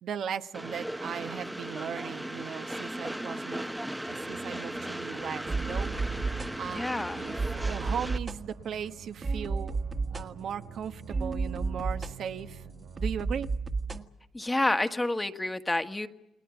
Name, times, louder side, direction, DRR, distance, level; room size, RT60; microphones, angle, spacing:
voice 1, 0.0-3.7 4.1-5.9 6.6-9.8 10.1-13.5, right 8 dB, 65° right, 8 dB, 1.2 m, -37 dB
Train, 0.5-8.2, right 1 dB, 5° right, 0.9 m, -37 dB
sound 1, 4.1-13.1, right 7 dB, 90° right, 6.0 m, -52 dB
sound 2, 5.5-14.0, right 4 dB, 35° right, 1.7 m, -33 dB
voice 2, 6.6-7.2 14.3-16.1, left 2 dB, 15° left, 7 dB, 1.6 m, -29 dB
29.5 x 21.0 x 7.1 m, 0.83 s
cardioid pair, 90°, 0 cm